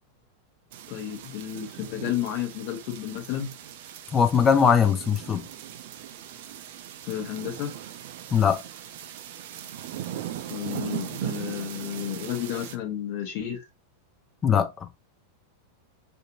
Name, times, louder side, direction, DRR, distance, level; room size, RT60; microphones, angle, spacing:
sound 1, 0.7-12.8, right 11 dB, 50° right, 0.3 m, -39 dB
voice 1, 0.9-3.5 7.0-7.7 10.5-13.6, left 11 dB, 45° left, 0.9 m, -32 dB
voice 2, 4.1-5.5 8.3-8.6 14.4-14.9, left 7 dB, 20° left, 0.4 m, -21 dB
2.6 x 2.5 x 2.5 m
figure-of-eight pair, 90°, 0 cm